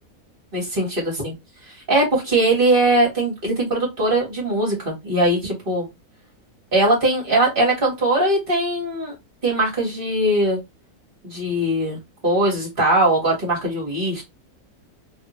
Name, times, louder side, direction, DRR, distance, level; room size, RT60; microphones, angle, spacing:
voice 1, 0.5-1.0 1.9-5.9 6.7-9.1 9.4-10.6 11.2-14.2, right 1 dB, 35° right, -2 dB, 1.6 m, -20 dB
3.1 x 2.5 x 2.9 m, 0.20 s
omnidirectional pair, 1.6 m